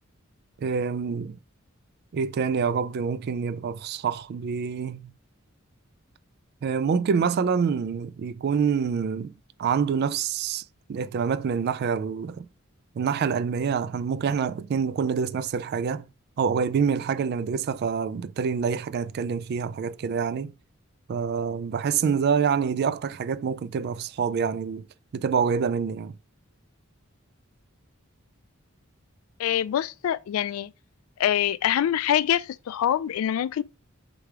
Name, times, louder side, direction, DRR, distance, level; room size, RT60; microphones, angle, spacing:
voice 1, 0.6-1.4 2.1-5.1 6.6-9.3 9.6-10.6 10.9-12.5 13.0-16.1 16.4-20.5 21.1-24.9 25.1-26.2, right 6 dB, 50° right, 0.3 m, -26 dB
voice 2, 29.4-30.7 31.2-33.6, left 10 dB, 85° left, 0.3 m, -25 dB
3.5 x 3.3 x 4.6 m
head